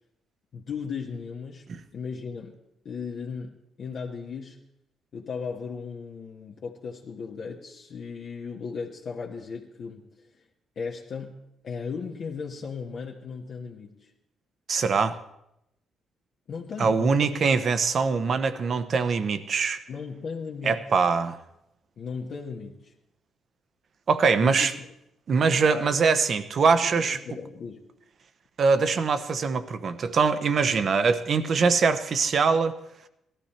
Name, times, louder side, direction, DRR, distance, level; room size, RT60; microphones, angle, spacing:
voice 1, 0.5-1.7 1.9-2.6 2.8-4.6 5.1-10.0 10.7-11.4 11.6-14.1 16.5-17.3 19.9-20.8 22.0-22.9 24.4-24.7 25.5-26.0 26.8-27.8, left 5 dB, 60° left, -2 dB, 1.4 m, -36 dB
voice 2, 14.7-15.2 16.8-19.8 20.6-21.4 24.1-24.7 25.3-27.2 28.6-32.7, right 5 dB, 50° right, 11 dB, 1.0 m, -23 dB
18.0 x 13.5 x 4.4 m, 0.83 s
cardioid pair, 90°, 0 cm